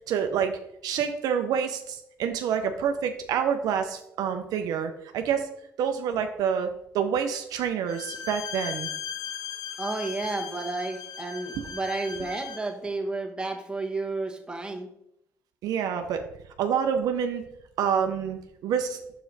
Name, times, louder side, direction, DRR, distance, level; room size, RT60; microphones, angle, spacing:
voice 1, 0.1-5.5 5.8-8.9 11.6-11.7 15.6-16.2 16.6-17.4 17.8-19.0, right 7 dB, 75° right, 7 dB, 0.6 m, -27 dB
Bowed string instrument, 7.9-12.7, left 7 dB, 70° left, 0.6 m, -37 dB
voice 2, 9.8-14.9, right 3 dB, 15° right, 1 dB, 1.3 m, -32 dB
6.0 x 4.9 x 4.0 m, 0.79 s
supercardioid pair, 65°, 7 cm